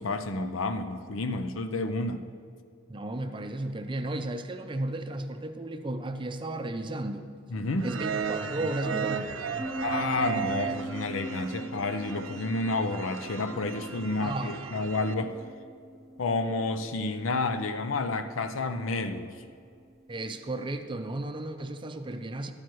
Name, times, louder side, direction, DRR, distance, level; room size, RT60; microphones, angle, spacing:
voice 1, 0.0-2.2 7.5-7.9 9.8-15.3 16.2-19.4, left 3 dB, 90° left, 9 dB, 0.6 m, -30 dB
voice 2, 2.9-7.3 7.8-9.3 14.2-14.7 20.1-22.5, right 2 dB, 25° right, 7 dB, 0.5 m, -34 dB
sound 1, 7.8-15.1, right 7 dB, 80° right, 0.5 m, -35 dB
sound 2, 9.5-21.1, right 1 dB, ahead, 0.8 m, -42 dB
12.0 x 9.4 x 3.1 m, 2.3 s
head